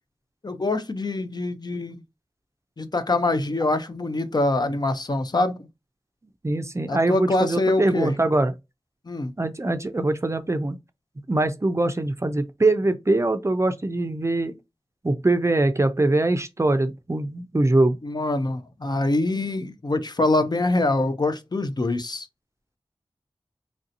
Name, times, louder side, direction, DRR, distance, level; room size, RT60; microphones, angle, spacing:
voice 1, 0.4-2.0 2.8-5.5 6.9-8.1 9.1-9.3 18.0-22.3, left 2 dB, 45° left, 0.5 m, -24 dB
voice 2, 6.4-8.5 9.4-10.8 11.3-14.5 15.0-18.0, right 2 dB, 30° right, 0.4 m, -22 dB
3.2 x 2.7 x 2.6 m
wide cardioid pair, 65°, 10 cm